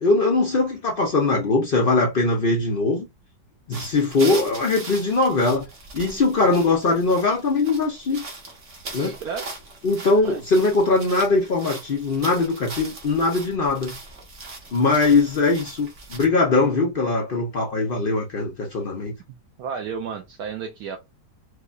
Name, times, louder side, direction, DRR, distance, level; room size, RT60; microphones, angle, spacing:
voice 1, 0.0-3.1 3.7-5.7 5.9-8.2 8.9-9.2 9.8-14.0 14.7-19.1, left 3 dB, 70° left, 0.5 m, -21 dB
sound 1, 3.7-16.3, right 3 dB, 50° right, 1.3 m, -39 dB
voice 2, 8.9-9.5 10.2-10.4 19.6-21.0, right 6 dB, 70° right, 1.0 m, -32 dB
4.6 x 2.2 x 2.4 m
omnidirectional pair, 1.9 m